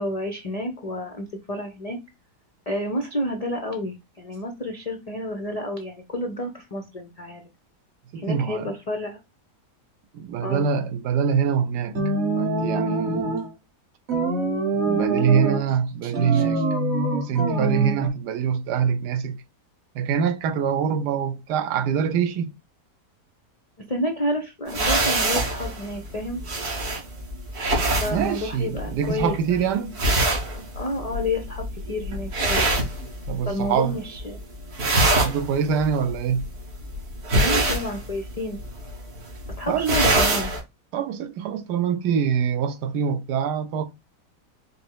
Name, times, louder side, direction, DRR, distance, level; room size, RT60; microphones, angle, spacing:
voice 1, 0.0-2.0 2.7-7.4 8.1-9.2 10.4-10.7 16.0-16.4 23.9-26.4 27.9-29.8 30.7-32.6 33.5-34.4 37.3-38.6 39.6-40.5, left 1 dB, 75° left, 0.3 m, -30 dB
voice 2, 8.1-8.7 10.1-12.0 12.4-13.3 14.7-16.6 17.2-19.4 19.9-22.5 28.1-30.0 33.3-34.0 34.9-36.5 39.7-40.0 40.9-43.9, right 7 dB, 85° right, 1.2 m, -24 dB
sound 1, 11.9-13.5 14.1-15.7 16.1-18.1, right 2 dB, 45° right, 1.1 m, -24 dB
sound 2, 24.7-33.6 33.9-34.4 34.6-40.6, right 2 dB, 65° right, 2.1 m, -25 dB
5.2 x 2.0 x 4.6 m
omnidirectional pair, 1.8 m